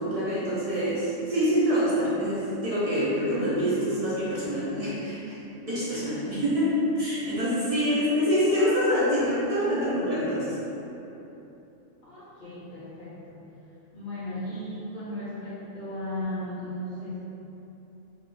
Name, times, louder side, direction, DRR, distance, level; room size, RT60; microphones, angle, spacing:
voice 1, 0.0-10.6, equal, 60° right, -9 dB, 0.4 m, -26 dB
voice 2, 5.9-6.4 7.7-8.1 12.0-13.4 13.9-17.2, left 1 dB, 50° left, -10 dB, 0.7 m, -36 dB
2.6 x 2.4 x 3.6 m, 3.0 s
omnidirectional pair, 1.4 m